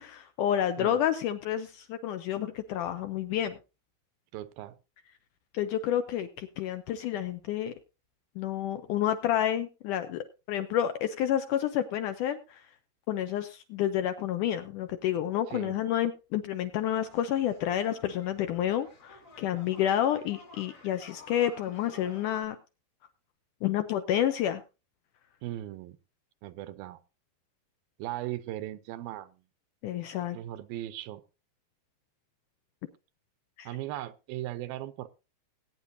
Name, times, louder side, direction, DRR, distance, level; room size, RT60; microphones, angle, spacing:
voice 1, 0.0-3.6 5.5-7.7 8.4-12.6 13.1-22.6 23.6-24.6 29.8-30.4 33.6-33.7, left 11 dB, 75° left, 9 dB, 1.9 m, -29 dB
voice 2, 4.3-4.8 15.5-15.8 25.4-26.0 26.4-27.0 28.0-29.4 30.3-31.2 33.7-35.1, right 14 dB, 80° right, 14 dB, 2.4 m, -38 dB
sound 1, 16.8-22.4, left 4 dB, 35° left, 1.3 m, -53 dB
19.5 x 9.3 x 2.6 m, 0.29 s
omnidirectional pair, 4.3 m